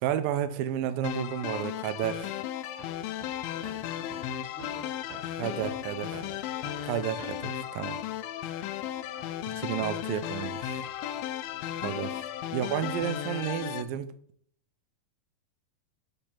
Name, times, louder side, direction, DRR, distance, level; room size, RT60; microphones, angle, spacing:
voice 1, 0.0-2.4 5.4-6.1 6.8-8.0 9.4-10.9 11.8-12.2 12.5-14.1, right 10 dB, 80° right, 2.4 m, -31 dB
sound 1, 1.0-13.8, left 11 dB, 85° left, 2.3 m, -35 dB
Hammer, 2.8-10.1 10.4-12.1, right 4 dB, 60° right, 1.8 m, -51 dB
voice 2, 3.5-6.9 11.0-11.2 11.4-12.1, left 2 dB, 45° left, 2.4 m, -51 dB
8.2 x 4.4 x 7.2 m
omnidirectional pair, 4.1 m